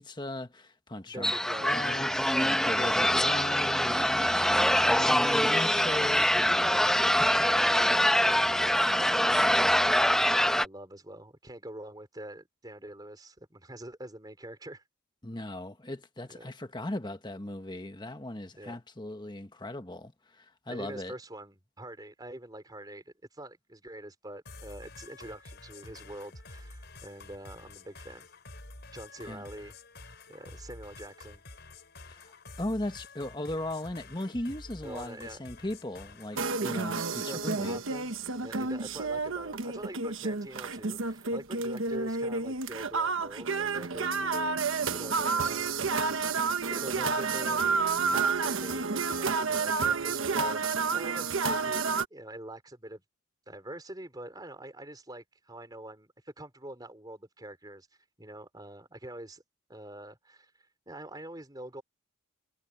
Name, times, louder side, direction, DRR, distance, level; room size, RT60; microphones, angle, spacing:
voice 1, 0.0-1.3 1.6-4.2 4.9-6.8 15.2-21.1 29.2-29.5 32.1-37.8, left 1 dB, 20° left, 1.2 m, -38 dB
voice 2, 1.1-1.8 2.8-3.4 3.6-5.6 6.6-7.0 7.3-9.7 10.5-14.8 16.3-16.5 18.6-18.8 20.7-28.3 28.9-29.8 30.3-31.4 34.8-35.4 36.6-36.8 37.3-38.1 38.4-45.8 46.4-47.8 48.1-53.0 53.5-57.9 58.2-59.4 59.7-60.5 60.9-61.8, right 1 dB, 20° right, 3.9 m, -44 dB
sound 1, 1.2-10.6, equal, ahead, 0.9 m, -24 dB
sound 2, 24.5-36.5, left 2 dB, 50° left, 5.2 m, -49 dB
sound 3, 36.4-52.0, right 4 dB, 70° right, 1.2 m, -30 dB
head